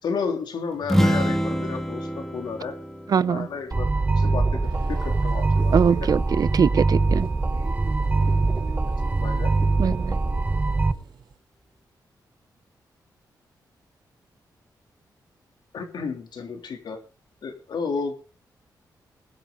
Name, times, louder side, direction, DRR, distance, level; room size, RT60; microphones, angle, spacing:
voice 1, 0.0-2.8 3.2-5.7 6.0-6.1 9.2-9.5 15.7-17.0 17.4-18.1, left 5 dB, 75° left, 3.3 m, -32 dB
sound 1, 0.8-4.6, equal, 5° left, 2.2 m, -26 dB
voice 2, 3.1-3.5 5.7-7.3 9.8-10.2, right 7 dB, 60° right, 0.7 m, -22 dB
sound 2, 3.7-10.9, right 3 dB, 20° right, 0.8 m, -23 dB
sound 3, 4.6-11.4, right 6 dB, 80° right, 3.7 m, -44 dB
20.5 x 9.3 x 4.0 m
cardioid pair, 95°, 7 cm